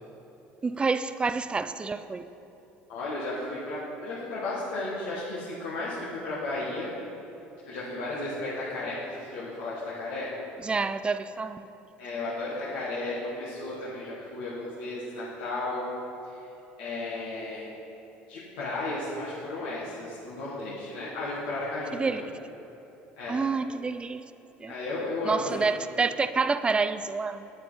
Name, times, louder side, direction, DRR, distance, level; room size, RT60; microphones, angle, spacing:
voice 1, 0.6-2.3 10.6-11.6 21.9-22.2 23.3-24.2 24.6-24.7 25.2-27.5, right 4 dB, 20° right, 12 dB, 0.4 m, -28 dB
voice 2, 2.9-6.9 7.6-10.3 12.0-15.9 16.2-16.4 16.8-17.7 18.3-22.2 23.2-23.4 24.7-25.7, left 2 dB, 85° left, -8 dB, 1.6 m, -34 dB
8.6 x 8.4 x 3.8 m, 3.0 s
supercardioid pair, 85°, 5 cm